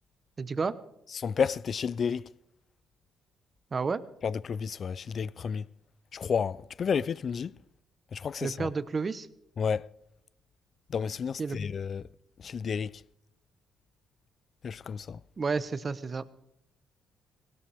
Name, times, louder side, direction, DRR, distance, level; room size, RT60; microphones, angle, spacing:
voice 1, 0.4-0.8 3.7-4.0 8.4-9.3 11.4-11.6 15.4-16.2, right 4 dB, 35° right, 1.0 m, -31 dB
voice 2, 1.1-2.3 4.2-5.7 6.1-7.5 8.1-8.7 9.6-9.9 10.9-12.1 12.4-13.0 14.6-15.2, left 6 dB, 50° left, 0.4 m, -31 dB
18.5 x 18.0 x 3.5 m
cardioid pair, 90°, 0 cm